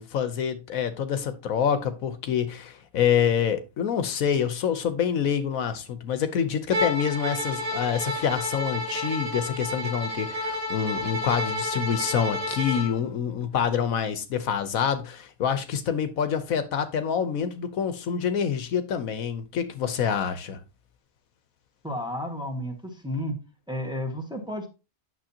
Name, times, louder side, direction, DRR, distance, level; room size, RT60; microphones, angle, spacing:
voice 1, 0.0-20.6, left 8 dB, 75° left, 1.2 m, -27 dB
Bowed string instrument, 6.7-12.9, left 1 dB, 90° right, 3.0 m, -30 dB
voice 2, 21.8-23.4 23.7-24.7, left 1 dB, 5° right, 1.5 m, -32 dB
9.0 x 6.6 x 2.8 m
omnidirectional pair, 1.5 m